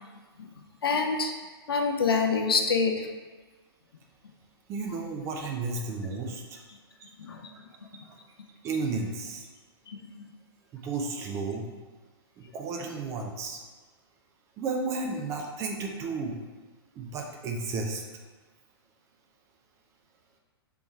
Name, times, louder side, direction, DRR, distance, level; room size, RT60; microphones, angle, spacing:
voice 1, 0.8-1.3 1.7-3.1 7.2-7.4 9.9-10.2, left 4 dB, 65° left, 3 dB, 0.6 m, -26 dB
voice 2, 4.7-6.6 7.0-7.1 8.0-8.2 8.6-9.5 10.7-11.7 12.4-13.6 14.6-16.4 17.0-18.0, right 3 dB, 20° right, 1 dB, 0.5 m, -33 dB
3.5 x 3.0 x 4.5 m, 1.3 s
figure-of-eight pair, 110°, 13 cm